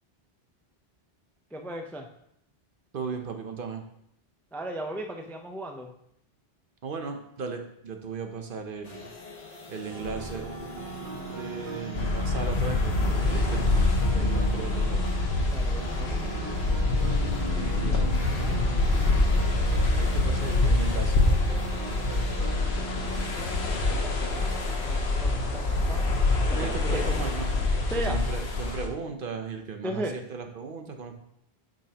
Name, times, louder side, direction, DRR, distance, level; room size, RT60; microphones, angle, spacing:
voice 1, 1.5-2.1 4.5-6.0 14.1-14.5 15.5-16.3 23.4-26.2 26.9-27.0 27.9-28.3 29.8-30.3, right 1 dB, 5° left, 3 dB, 0.4 m, -37 dB
voice 2, 2.9-3.8 6.8-9.1 9.7-10.5 11.3-13.7 14.2-15.1 16.1-17.1 17.5-19.2 19.9-22.2 26.5-27.5 28.0-31.2, right 5 dB, 60° right, 5 dB, 0.9 m, -37 dB
sound 1, 8.8-28.7, left 1 dB, 40° left, 1.0 m, -41 dB
sound 2, 9.9-23.3, right 4 dB, 85° right, 1.4 m, -39 dB
sound 3, 11.9-28.9, left 2 dB, 85° left, 1.2 m, -25 dB
8.7 x 5.2 x 2.9 m, 0.73 s
omnidirectional pair, 1.1 m